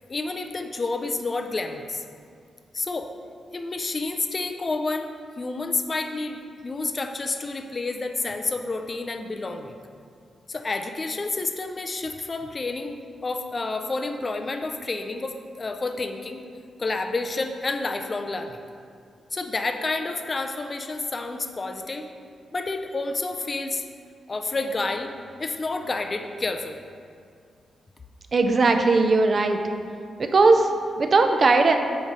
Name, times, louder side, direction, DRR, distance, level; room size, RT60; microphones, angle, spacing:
voice 1, 0.1-2.0 2.7-3.1 3.5-5.1 5.4-9.8 10.5-16.4 16.8-18.6 19.3-22.0 22.5-23.8 24.3-25.1 25.4-26.8, left 3 dB, 30° left, 5 dB, 0.4 m, -29 dB
voice 2, 28.3-29.6 30.2-30.7 31.0-31.8, right 3 dB, 40° right, 6 dB, 0.4 m, -18 dB
8.8 x 3.1 x 5.4 m, 2.3 s
wide cardioid pair, 135°, 0 cm